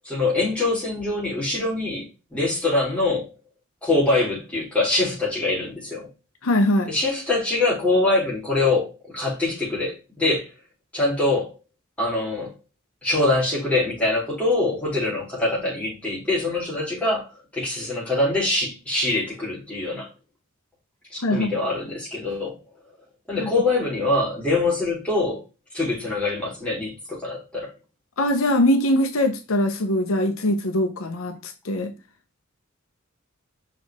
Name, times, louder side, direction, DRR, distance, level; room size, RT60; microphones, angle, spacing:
voice 1, 0.0-2.0 2.3-3.3 3.8-6.1 6.9-10.5 10.9-11.5 12.0-12.5 13.0-20.1 21.1-22.6 23.3-25.4 25.7-27.7, left 2 dB, 5° left, 3.4 m, -24 dB
voice 2, 6.4-6.9 21.2-21.5 23.4-23.5 28.2-31.9, left 1 dB, 75° left, 0.8 m, -22 dB
6.2 x 4.6 x 3.5 m
head